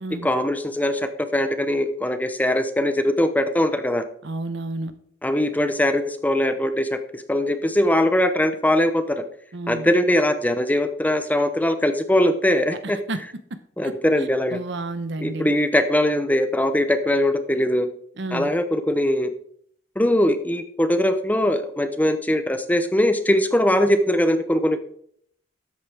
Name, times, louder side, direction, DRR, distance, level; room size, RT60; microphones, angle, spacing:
voice 1, 0.2-4.0 5.2-9.2 9.7-13.0 13.8-14.6 15.2-17.9 18.3-19.3 20.0-24.8, left 1 dB, 10° left, 9 dB, 0.7 m, -21 dB
voice 2, 4.2-4.9 9.5-9.9 12.7-13.2 13.5-13.9 14.5-15.5 18.2-18.5, right 2 dB, 65° right, 11 dB, 0.9 m, -31 dB
13.0 x 8.3 x 3.5 m, 0.63 s
head